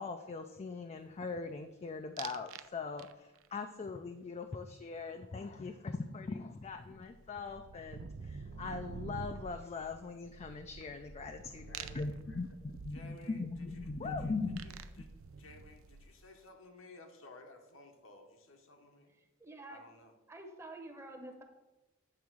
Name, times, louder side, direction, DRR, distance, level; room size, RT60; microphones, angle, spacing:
voice 1, 0.0-14.6, left 4 dB, 30° left, 7 dB, 0.4 m, -41 dB
sound 1, 2.2-2.7 3.0-3.5 5.9-6.0 6.2-16.3, right 5 dB, 70° right, 0.4 m, -48 dB
voice 2, 11.5-12.4 12.9-15.1 15.4-19.1 19.7-20.1 21.2-21.4, left 2 dB, 70° left, 4 dB, 1.1 m, -57 dB
voice 3, 19.4-19.8 20.3-21.4, right 2 dB, 15° right, 4 dB, 0.9 m, -48 dB
8.7 x 3.5 x 6.2 m, 1.0 s
head